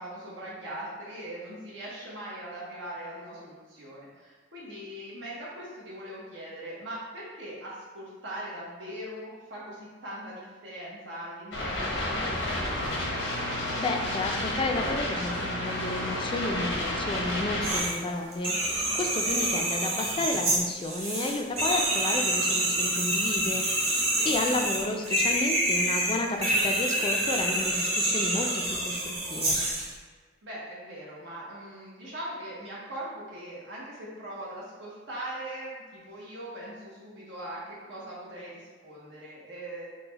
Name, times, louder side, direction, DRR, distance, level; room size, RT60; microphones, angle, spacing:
voice 1, 0.0-12.8 19.0-19.5 24.1-24.3 30.4-39.9, right 1 dB, 75° right, -6 dB, 0.8 m, -41 dB
sound 1, 11.5-17.8, left 1 dB, 90° left, 0.9 m, -31 dB
voice 2, 13.8-29.6, left 2 dB, 30° left, 3 dB, 0.3 m, -32 dB
sound 2, 17.6-18.0 18.3-29.9, right 1 dB, 35° right, 0.9 m, -27 dB
3.9 x 2.1 x 3.9 m, 1.4 s
head